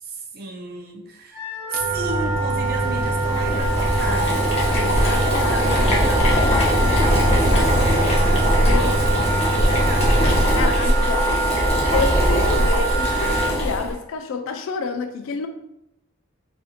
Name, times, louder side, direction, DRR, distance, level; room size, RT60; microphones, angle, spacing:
voice 1, 0.0-4.5 5.0-10.2 10.7-11.4, right 2 dB, 45° right, 1 dB, 0.4 m, -34 dB
Wind instrument woodwind instrument, 1.3-13.5, right 4 dB, 70° right, 0.9 m, -26 dB
sound 1, 1.8-10.4, equal, 30° right, 1.0 m, -26 dB
Boiling, 2.7-13.9, equal, 30° left, 0.6 m, -20 dB
voice 2, 4.8-5.6 8.7-9.2 10.5-11.2 11.9-15.5, left 4 dB, 70° left, 7 dB, 0.3 m, -28 dB
2.7 x 2.5 x 2.4 m, 0.84 s
head